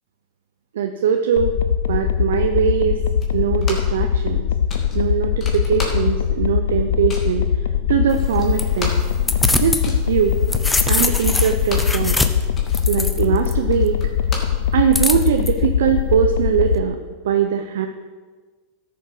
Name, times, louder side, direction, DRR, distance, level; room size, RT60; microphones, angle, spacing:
voice 1, 0.7-1.5 1.9-3.0 3.3-4.5 4.9-7.4 7.9-8.9 9.6-10.3 10.9-12.2 12.9-14.0 14.7-17.0 17.2-17.9, right 8 dB, 90° right, 5 dB, 0.7 m, -21 dB
sound 1, 1.4-16.8, left 8 dB, 90° left, 0.6 m, -21 dB
sound 2, 3.2-4.0 4.3-4.4 4.7-6.4 6.6-7.4 7.9-8.0 8.2-12.0 12.3-15.1, left 3 dB, 30° left, 2.5 m, -35 dB
sound 3, 8.1-9.8 10.2-13.5 14.9-15.5, left 2 dB, 10° left, 0.8 m, -23 dB
13.0 x 7.0 x 6.1 m, 1.4 s
supercardioid pair, 130°, 0 cm